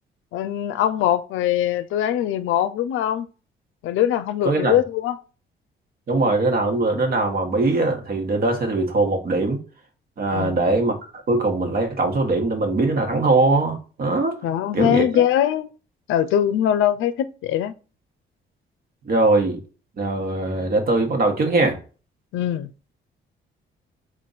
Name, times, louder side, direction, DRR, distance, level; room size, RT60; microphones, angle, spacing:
voice 1, 0.3-3.3 3.8-5.2 10.3-10.6 14.4-15.7 16.1-17.7 22.3-22.7, left 11 dB, 80° left, 0.5 m, -22 dB
voice 2, 6.1-9.6 10.2-10.9 11.3-14.4 14.7-15.0 19.1-19.6 20.0-21.8, right 2 dB, 50° right, 1.3 m, -21 dB
3.7 x 2.5 x 4.0 m
cardioid pair, 90°, 20 cm